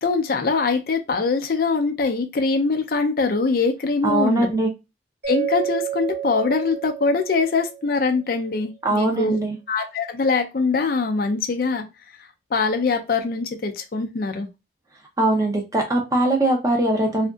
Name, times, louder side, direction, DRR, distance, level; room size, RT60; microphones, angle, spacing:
voice 1, 0.0-4.5 5.3-9.4 9.7-11.8 12.2-14.5, left 4 dB, 50° left, 5 dB, 0.4 m, -23 dB
voice 2, 4.0-4.7 8.8-9.6 15.2-17.3, right 2 dB, 20° right, 2 dB, 0.5 m, -21 dB
Mallet percussion, 5.2-8.2, right 10 dB, 65° right, 1.0 m, -30 dB
2.7 x 2.5 x 2.3 m, 0.25 s
head